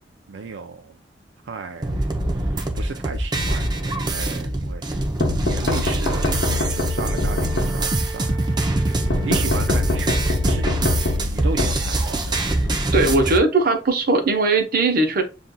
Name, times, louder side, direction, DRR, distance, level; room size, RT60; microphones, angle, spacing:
voice 1, 0.3-1.0 1.4-5.0 5.4-10.2 10.4-12.4, right 4 dB, 80° right, 0.4 m, -35 dB
sound 1, 1.8-13.4, right 1 dB, 25° right, 0.6 m, -24 dB
sound 2, 5.2-8.2 9.1-12.4, left 2 dB, 75° left, 0.7 m, -24 dB
Wind instrument woodwind instrument, 6.1-11.2, right 5 dB, 25° left, 0.8 m, -39 dB
voice 2, 12.9-15.2, right 3 dB, 55° right, 0.8 m, -19 dB
6.9 x 2.5 x 2.2 m
head